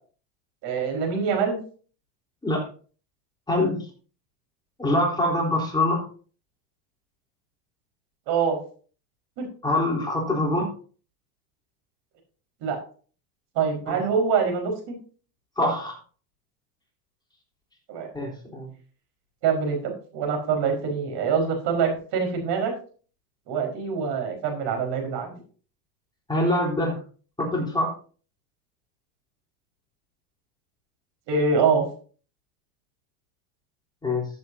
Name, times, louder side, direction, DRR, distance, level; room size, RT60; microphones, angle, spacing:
voice 1, 0.6-1.6 8.3-8.6 9.4-9.5 12.6-12.8 13.5-15.0 17.9-18.1 19.4-22.7 23.5-25.3 31.3-31.9, right 5 dB, 55° right, 3 dB, 4.9 m, -25 dB
voice 2, 3.5-3.9 4.8-6.1 9.6-10.7 13.9-14.0 15.6-15.9 18.1-18.7 26.3-27.0 27.4-27.9 34.0-34.3, left 1 dB, 10° left, -3 dB, 3.8 m, -24 dB
14.5 x 7.6 x 2.8 m, 0.40 s
supercardioid pair, 110°, 49 cm